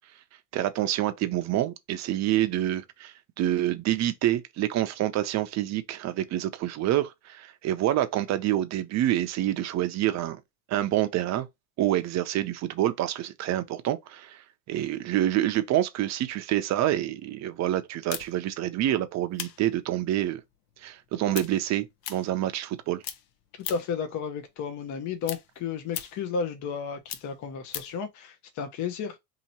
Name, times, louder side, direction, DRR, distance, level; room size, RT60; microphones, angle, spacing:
voice 1, 0.5-10.4 10.7-11.5 11.8-14.4 14.7-20.4 20.8-23.0, right 13 dB, 35° right, 0.6 m, -27 dB
sound 1, 18.1-22.8 23.0-24.0 24.4-28.0, left 11 dB, 65° left, 0.8 m, -39 dB
voice 2, 23.7-29.2, left 6 dB, 40° left, 0.7 m, -33 dB
2.9 x 2.8 x 4.1 m
supercardioid pair, 115°, 48 cm